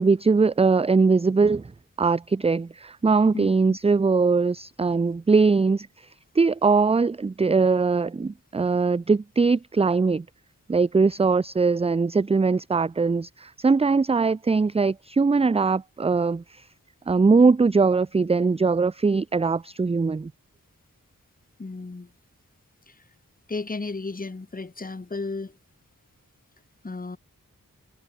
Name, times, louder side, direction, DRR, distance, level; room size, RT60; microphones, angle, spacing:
voice 1, 0.0-1.6 2.0-5.9 6.4-10.2 10.7-16.4 17.1-20.3, right 4 dB, 20° right, 0.3 m, -21 dB
voice 2, 3.3-3.8 21.6-22.1 22.9-23.0 23.5-25.6 26.8-27.2, left 3 dB, 25° left, 0.9 m, -34 dB
wide cardioid pair, 70°, 34 cm